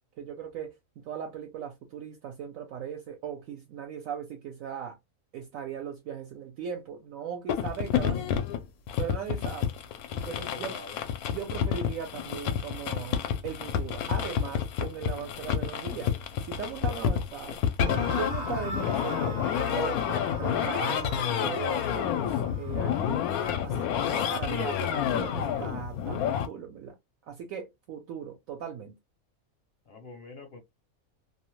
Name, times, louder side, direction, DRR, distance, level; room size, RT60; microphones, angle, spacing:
voice 1, 0.2-5.0 5.3-8.2 9.0-9.7 10.3-10.7 11.3-16.1 16.4-17.6 18.1-23.2 23.6-26.9 27.2-28.9, right 7 dB, 70° right, 0.9 m, -38 dB
sound 1, 7.5-26.5, left 9 dB, 80° left, 1.0 m, -29 dB
voice 2, 10.1-11.0 29.9-30.6, left 3 dB, 55° left, 0.8 m, -44 dB
sound 2, 17.8-24.9, right 1 dB, 35° right, 0.7 m, -41 dB
2.6 x 2.0 x 2.9 m
omnidirectional pair, 1.5 m